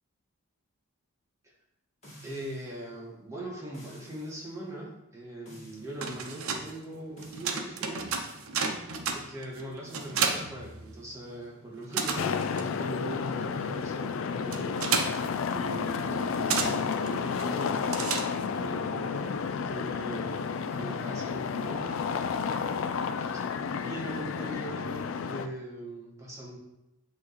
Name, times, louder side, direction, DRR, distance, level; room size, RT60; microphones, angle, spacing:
sound 1, 2.0-2.8 3.7-4.4 5.5-6.0 7.2-7.5, equal, 30° left, 2.1 m, -51 dB
voice 1, 2.2-8.2 9.1-17.9 18.5-22.3 23.2-23.4 23.7-26.6, right 1 dB, 15° right, -4 dB, 1.4 m, -41 dB
sound 2, 5.8-11.4 11.6-18.7, right 5 dB, 85° right, 0.7 m, -33 dB
sound 3, 12.2-25.5, left 5 dB, 70° left, 0.4 m, -31 dB
8.7 x 3.0 x 4.1 m, 0.91 s
head